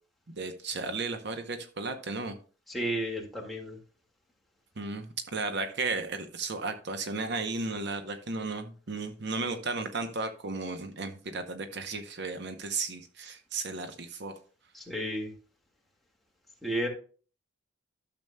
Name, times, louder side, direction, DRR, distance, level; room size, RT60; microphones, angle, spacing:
voice 1, 0.3-2.4 4.8-14.3, right 3 dB, 55° right, 7 dB, 0.8 m, -34 dB
voice 2, 2.7-3.8 14.7-15.3 16.6-16.9, right 1 dB, ahead, -2 dB, 1.8 m, -32 dB
12.5 x 6.9 x 2.2 m, 0.39 s
head